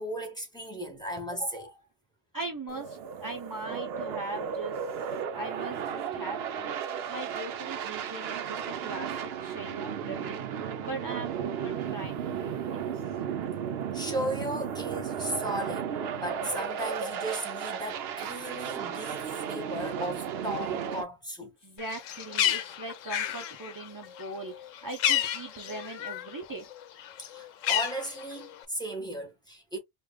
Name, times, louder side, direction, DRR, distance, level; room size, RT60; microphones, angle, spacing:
voice 1, 0.0-1.8 13.9-21.5 27.3-29.8, right 1 dB, 5° left, 1.0 m, -36 dB
voice 2, 2.3-4.8 5.3-13.0 21.4-26.7, right 2 dB, 30° right, 0.4 m, -40 dB
sound 1, 2.7-21.0, right 8 dB, 65° right, 0.7 m, -34 dB
Bird, 21.8-26.4 26.7-28.6, left 11 dB, 80° left, 1.0 m, -31 dB
4.9 x 2.6 x 2.2 m
omnidirectional pair, 1.3 m